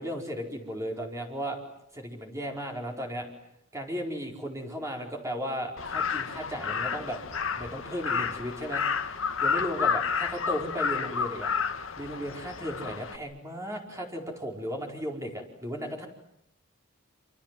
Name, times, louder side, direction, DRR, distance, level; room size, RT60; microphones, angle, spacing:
voice 1, 0.0-1.6 1.9-3.3 3.7-7.2 7.5-8.8 9.4-11.5 12.0-16.1, equal, 15° right, 1 dB, 4.8 m, -35 dB
Crow, 5.8-13.2, left 6 dB, 70° left, 2.1 m, -30 dB
28.0 x 27.0 x 7.7 m, 0.78 s
head